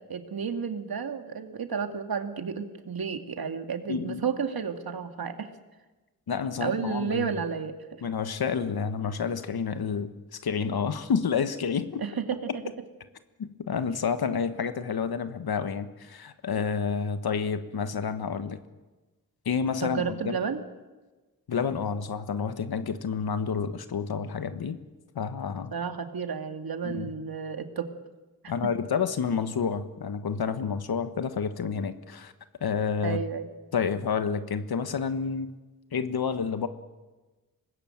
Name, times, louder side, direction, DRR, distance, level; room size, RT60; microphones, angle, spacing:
voice 1, 0.1-5.5 6.6-7.7 12.0-12.5 19.8-20.6 25.7-27.9 33.0-33.5, right 6 dB, 80° right, 6 dB, 2.4 m, -32 dB
voice 2, 3.9-4.2 6.3-7.3 8.0-10.1 10.4-12.0 13.4-18.6 19.4-20.4 21.5-24.8 25.1-25.7 26.8-27.1 28.5-32.3 32.6-33.2 33.7-35.5 35.9-36.7, left 6 dB, 90° left, 11 dB, 1.4 m, -29 dB
25.0 x 20.0 x 9.0 m, 1.2 s
wide cardioid pair, 85°, 36 cm